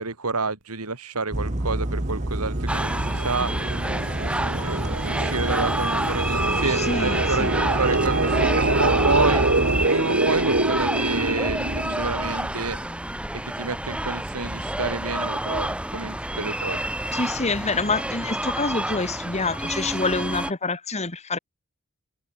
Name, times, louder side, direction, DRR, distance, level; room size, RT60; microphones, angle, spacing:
voice 1, 0.0-3.5 4.2-9.4 9.8-12.8 13.3-16.8, right 3 dB, 80° right, 2.8 m, -29 dB
sound 1, 1.3-9.9, right 1 dB, 35° right, 1.6 m, -29 dB
sound 2, 2.0-12.5, right 2 dB, 60° right, 3.4 m, -26 dB
sound 3, 2.7-20.5, right 1 dB, 5° right, 1.7 m, -29 dB
voice 2, 6.7-7.5 17.1-21.4, left 3 dB, 30° left, 1.8 m, -27 dB
head